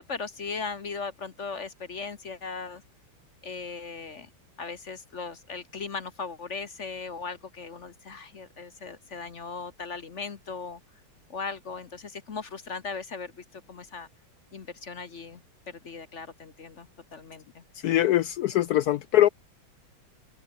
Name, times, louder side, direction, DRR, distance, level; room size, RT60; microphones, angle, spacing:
voice 1, 0.0-2.8 3.4-4.3 4.6-10.8 11.3-14.1 14.5-15.4 15.7-17.6, left 4 dB, 40° left, 1.3 m, -38 dB
voice 2, 17.8-19.3, left 13 dB, 80° left, 0.8 m, -22 dB
omnidirectional pair, 2.2 m